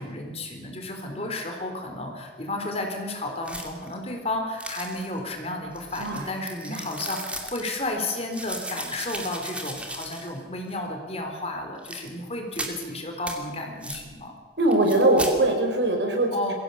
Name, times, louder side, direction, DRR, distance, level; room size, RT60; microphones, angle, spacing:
voice 1, 0.0-14.3 16.3-16.5, left 2 dB, 35° left, 3 dB, 3.9 m, -32 dB
sound 1, 3.4-3.9 4.6-5.2 5.7-7.7 8.3-10.4 10.7-10.8 11.8-12.1 12.5-12.9 13.3-13.4 13.8-14.0 14.7-15.4, right 1 dB, 5° right, 2.6 m, -36 dB
voice 2, 14.6-16.5, right 2 dB, 85° right, 3 dB, 4.8 m, -22 dB
23.0 x 16.5 x 7.1 m, 1.5 s
head